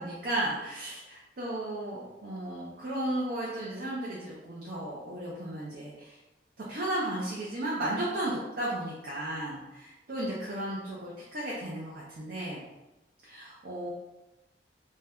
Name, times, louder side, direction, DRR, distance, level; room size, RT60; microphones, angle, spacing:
voice 1, 0.0-6.2 6.7-12.6 13.2-13.9, right 1 dB, 55° right, -6 dB, 0.6 m, -34 dB
2.6 x 2.2 x 3.4 m, 1.0 s
head